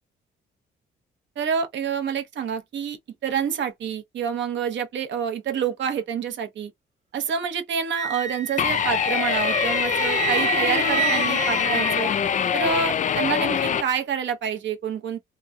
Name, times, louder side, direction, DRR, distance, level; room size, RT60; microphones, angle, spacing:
voice 1, 1.4-3.0 3.2-6.7 7.1-12.1 12.5-15.2, right 7 dB, 65° right, 0.8 m, -27 dB
Wind instrument woodwind instrument, 7.9-12.5, right 9 dB, 35° right, 0.5 m, -29 dB
sound 1, 8.6-13.8, left 8 dB, 40° left, 0.4 m, -24 dB
3.0 x 2.6 x 2.2 m
cardioid pair, 90°, 20 cm